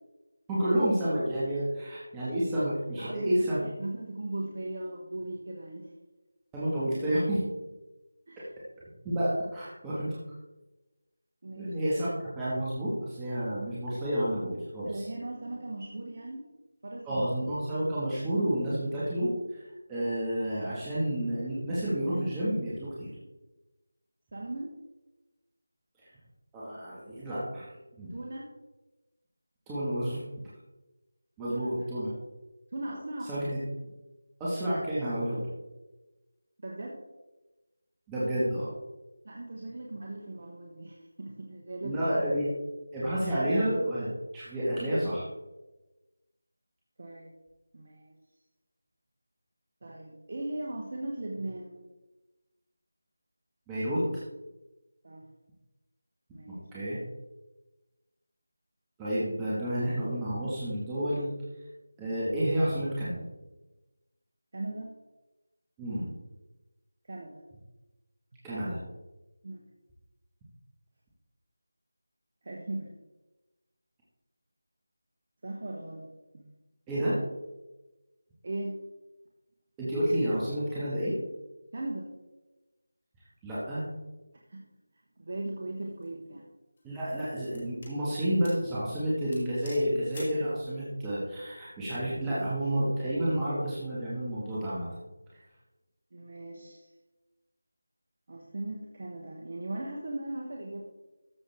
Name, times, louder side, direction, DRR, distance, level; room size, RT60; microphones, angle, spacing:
voice 1, 0.5-3.6 6.5-7.4 8.4-8.5 9.0-10.2 11.6-12.1 12.3-15.1 17.1-19.6 19.9-23.1 26.0-26.1 26.5-27.7 28.0-28.2 29.7-30.2 31.4-32.1 33.3-33.6 34.4-35.5 38.1-38.7 41.8-42.5 42.9-45.3 53.7-54.1 56.5-57.0 59.0-61.3 62.0-63.2 65.8-66.1 68.4-68.8 76.9-77.2 79.8-81.2 83.4-83.9 86.8-94.9, equal, 10° right, -10 dB, 1.9 m, -30 dB
voice 2, 3.0-5.9 8.3-8.5 11.4-11.7 14.8-16.5 16.8-17.3 24.3-24.7 28.1-28.5 31.5-31.6 32.7-33.3 36.6-37.0 39.2-42.0 47.0-47.3 47.7-48.1 49.8-51.8 55.0-55.3 56.3-56.6 64.5-64.9 67.0-67.4 69.4-69.6 72.4-72.9 75.4-76.5 78.4-78.8 81.7-82.1 84.5-84.7 85.2-86.5 96.1-96.9 98.3-100.8, right 2 dB, 45° right, -1 dB, 1.2 m, -38 dB
sound 1, 85.7-86.0 86.8-88.0 88.4-88.7 89.0-89.1 89.3-90.4, left 2 dB, 35° left, 2.9 m, -49 dB
13.5 x 6.4 x 3.6 m, 1.1 s
figure-of-eight pair, 165°, 0 cm